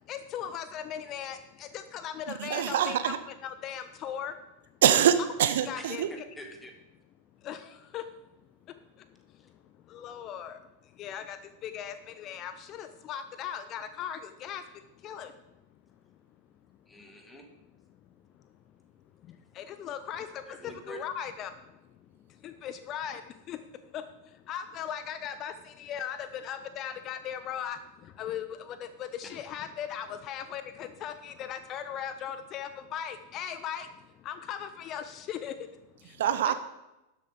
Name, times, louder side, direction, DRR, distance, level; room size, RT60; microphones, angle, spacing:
voice 1, 0.1-3.2 3.4-4.3 5.7-6.0 7.4-7.6 7.9-8.0 9.9-10.6 11.0-11.4 11.6-14.6 15.0-15.3 19.6-20.4 20.9-21.5 22.4-23.2 23.5-23.6 23.9-24.0 24.5-27.8 28.2-33.9 34.3-35.5 36.4-36.5, left 9 dB, 35° left, 11 dB, 0.6 m, -38 dB
voice 2, 2.4-3.2 4.8-6.1 36.2-36.5, right 9 dB, 60° right, 12 dB, 0.7 m, -24 dB
voice 3, 5.7-6.7 16.9-17.4 20.5-21.0 29.2-29.3, equal, 10° left, 4 dB, 1.9 m, -46 dB
12.5 x 7.5 x 5.1 m, 0.97 s
figure-of-eight pair, 90°, 0 cm